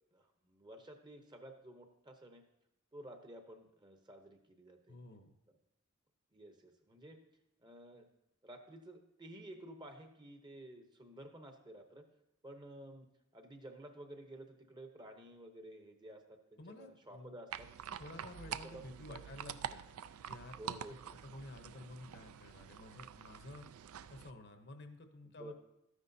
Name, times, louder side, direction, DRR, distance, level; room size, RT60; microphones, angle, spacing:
voice 1, 0.1-2.4 2.9-5.0 6.3-7.2 7.6-8.1 8.4-12.0 12.4-13.1 13.3-17.7 18.5-19.2 20.6-21.2 25.4-25.5, right 1 dB, 20° right, 5 dB, 0.8 m, -53 dB
voice 2, 4.9-5.3 16.6-17.3 18.0-19.8 20.3-23.7 24.1-25.5, left 2 dB, 50° left, 7 dB, 0.8 m, -52 dB
sound 1, 17.5-24.3, right 8 dB, 75° right, 0.4 m, -47 dB
13.0 x 9.6 x 2.7 m, 0.86 s
head